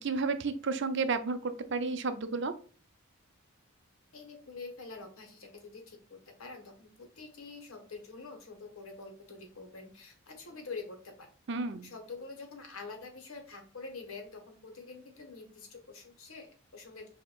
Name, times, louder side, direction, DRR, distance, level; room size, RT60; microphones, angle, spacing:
voice 1, 0.0-2.5 11.5-11.9, right 4 dB, 60° right, 10 dB, 0.5 m, -32 dB
voice 2, 4.1-11.3 11.8-17.1, left 4 dB, 90° left, 4 dB, 1.4 m, -46 dB
6.4 x 2.8 x 2.4 m, 0.42 s
head